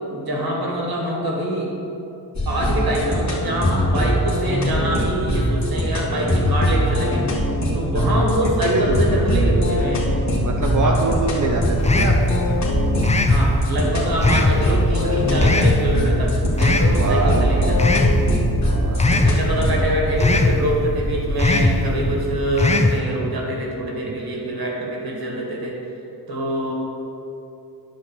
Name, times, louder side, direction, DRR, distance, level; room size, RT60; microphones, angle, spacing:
voice 1, 0.1-1.7 2.5-7.3 7.7-10.1 10.8-11.0 13.3-18.0 19.0-25.8 26.3-26.7, right 1 dB, 65° right, -2 dB, 2.2 m, -25 dB
sound 1, 2.3-19.9, equal, 45° left, 2.0 m, -22 dB
voice 2, 8.6-9.1 10.4-12.4 15.0-15.2 16.9-18.0 18.6-19.1, right 2 dB, 50° right, 0 dB, 0.9 m, -24 dB
sound 2, 8.7-22.4, equal, 70° left, 2.1 m, -26 dB
sound 3, 11.8-12.3 13.0-13.4 14.2-14.6 15.4-15.8 16.6-17.0 17.8-18.2 19.0-19.4 20.2-20.6 21.4-21.8 22.6-23.0, left 2 dB, 15° left, 0.6 m, -18 dB
9.7 x 4.2 x 7.4 m, 2.8 s
cardioid pair, 80°, 39 cm